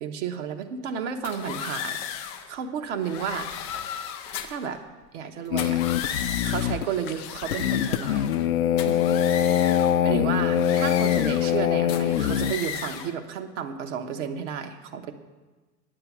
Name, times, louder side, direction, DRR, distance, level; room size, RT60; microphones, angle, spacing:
voice 1, 0.0-2.0 2.5-3.5 4.4-4.8 5.1-5.8 6.4-8.3 8.8-9.0 9.4-9.8 10.0-15.1, right 7 dB, 50° right, 6 dB, 1.2 m, -32 dB
sound 1, 1.2-2.5 3.0-4.7 5.5-6.8 7.2-8.5 8.8-10.0 10.5-11.6 11.9-13.1, left 8 dB, 15° left, 0.3 m, -35 dB
sound 2, 5.5-12.5, left 10 dB, 65° left, 0.6 m, -23 dB
9.6 x 6.9 x 8.6 m, 1.2 s
figure-of-eight pair, 90°, 46 cm